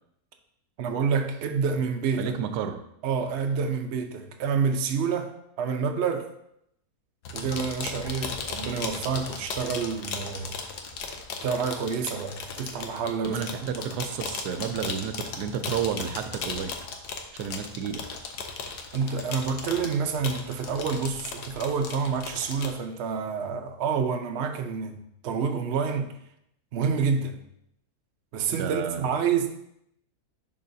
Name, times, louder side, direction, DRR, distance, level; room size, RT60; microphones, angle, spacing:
voice 1, 0.8-2.3 3.0-6.3 7.3-10.5 11.4-13.4 13.8-13.9 18.9-25.0 25.2-26.1 26.7-27.4 28.3-29.5, right 6 dB, 55° right, 5 dB, 0.8 m, -28 dB
voice 2, 2.2-2.8 13.2-16.8 17.3-18.1 28.5-29.0, right 8 dB, 85° right, 9 dB, 1.1 m, -31 dB
sound 1, 7.2-22.7, left 5 dB, 80° left, 1.3 m, -36 dB
10.5 x 3.8 x 2.7 m, 0.76 s
omnidirectional pair, 1.7 m